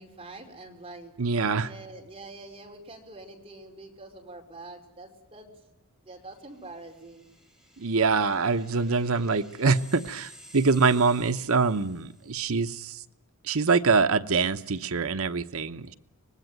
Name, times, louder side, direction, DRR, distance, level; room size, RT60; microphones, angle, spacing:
voice 1, 0.0-1.1 1.6-5.5 6.0-7.3, right 2 dB, 25° right, 2 dB, 4.8 m, -45 dB
voice 2, 1.2-1.7 7.8-13.0 13.4-15.9, right 4 dB, 65° right, 12 dB, 1.0 m, -24 dB
sound 1, 6.5-12.5, equal, 5° right, 4.9 m, -53 dB
24.5 x 20.5 x 9.2 m, 0.89 s
head